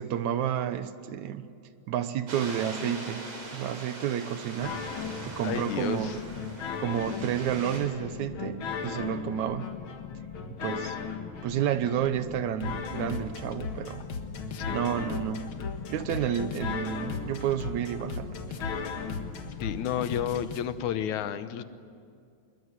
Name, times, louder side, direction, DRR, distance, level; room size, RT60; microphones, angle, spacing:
voice 1, 0.0-1.5 1.9-4.8 5.3-6.2 6.8-9.7 10.6-11.0 11.4-14.0 14.7-15.5 15.9-18.4, right 10 dB, 80° right, 11 dB, 2.4 m, -30 dB
sound 1, 2.3-7.8, right 2 dB, 60° right, 5.8 m, -42 dB
sound 2, 4.6-20.6, left 5 dB, 50° left, 2.2 m, -36 dB
voice 2, 5.4-6.2 14.5-14.9 19.6-21.6, left 9 dB, 80° left, 12 dB, 2.4 m, -31 dB
26.5 x 22.0 x 9.8 m, 2.4 s
omnidirectional pair, 3.4 m